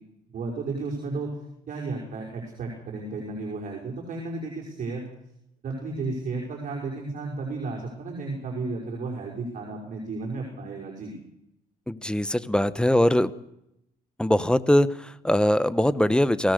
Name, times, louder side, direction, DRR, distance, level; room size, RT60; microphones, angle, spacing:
voice 1, 0.3-1.3 1.7-5.0 5.6-11.1, right 3 dB, 50° right, -1 dB, 5.9 m, -33 dB
voice 2, 11.9-13.3 14.2-16.5, left 1 dB, 5° left, 15 dB, 1.0 m, -22 dB
25.0 x 17.5 x 6.6 m, 0.82 s
cardioid pair, 110°, 17 cm